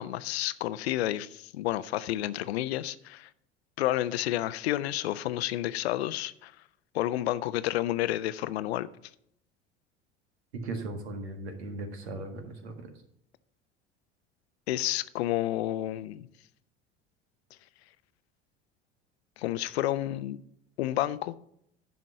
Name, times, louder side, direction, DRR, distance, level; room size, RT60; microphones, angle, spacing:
voice 1, 0.0-3.3 3.8-6.5 6.9-8.9 14.7-16.3 19.4-20.4 20.8-21.3, left 14 dB, 70° left, 0.6 m, -30 dB
voice 2, 10.6-12.8, right 2 dB, 75° right, 1.8 m, -37 dB
11.0 x 5.2 x 5.6 m
figure-of-eight pair, 70°, 33 cm